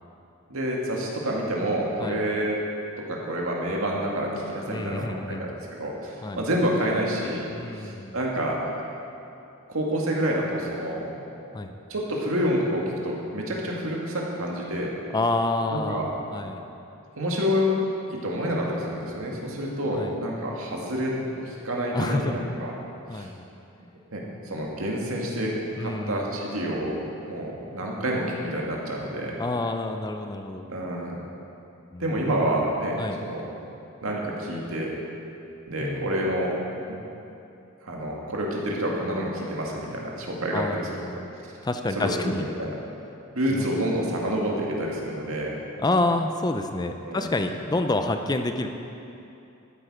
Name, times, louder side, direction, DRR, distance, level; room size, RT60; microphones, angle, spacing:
voice 1, 0.5-2.6 3.1-7.5 7.8-8.6 9.7-11.1 11.6-11.7 11.9-14.9 15.7-16.1 17.2-17.7 18.1-22.7 23.1-23.3 24.1-25.5 25.8-27.0 27.3-29.3 30.7-31.2 32.0-33.5 34.0-34.9 35.7-36.5 37.8-40.9 42.0-42.1 42.4-42.7 43.3-45.6 47.0-47.3, equal, 70° right, -2 dB, 2.0 m, -28 dB
voice 2, 4.7-5.5 6.2-6.4 7.5-8.2 11.5-11.7 15.1-16.6 19.9-20.2 21.9-22.4 23.1-23.5 25.8-26.3 29.4-30.7 31.9-32.3 33.0-33.2 35.8-36.2 40.5-41.3 41.6-42.5 43.5-43.6 45.8-48.7, left 2 dB, 20° left, 6 dB, 0.4 m, -28 dB
13.0 x 8.8 x 4.9 m, 2.8 s
head